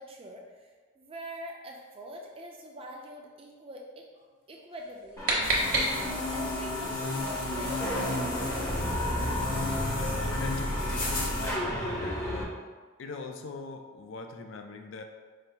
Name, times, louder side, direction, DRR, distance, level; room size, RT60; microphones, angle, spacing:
voice 1, 0.0-5.6 5.9-8.1 8.4-9.4, equal, 25° right, 0 dB, 0.5 m, -45 dB
sound 1, 4.8-6.4, right 1 dB, 45° right, 0.9 m, -29 dB
sound 2, 5.2-12.4, left 1 dB, 15° left, 0.7 m, -33 dB
sound 3, 5.4-11.5, left 2 dB, 45° left, 0.8 m, -34 dB
voice 2, 10.0-12.5 13.0-15.0, left 3 dB, 65° left, 5 dB, 0.4 m, -42 dB
4.9 x 2.0 x 4.4 m, 1.4 s
head